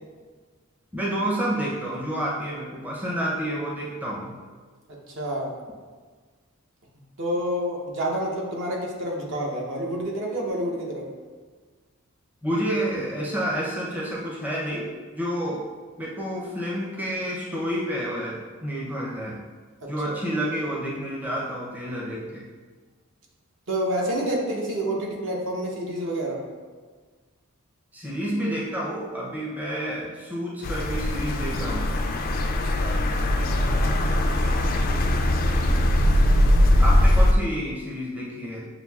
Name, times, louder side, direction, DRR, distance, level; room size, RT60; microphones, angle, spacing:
voice 1, 0.9-4.3 12.4-15.7 16.0-19.4 19.9-22.5 27.9-31.9 35.5-35.8 36.8-38.7, equal, 10° right, -5 dB, 0.5 m, -29 dB
voice 2, 4.9-5.5 7.2-11.1 19.8-20.1 23.7-26.4 32.4-33.0, right 1 dB, 60° right, -1 dB, 0.8 m, -28 dB
sound 1, 30.6-37.3, left 1 dB, 45° left, 0.3 m, -21 dB
6.8 x 2.7 x 2.3 m, 1.5 s
head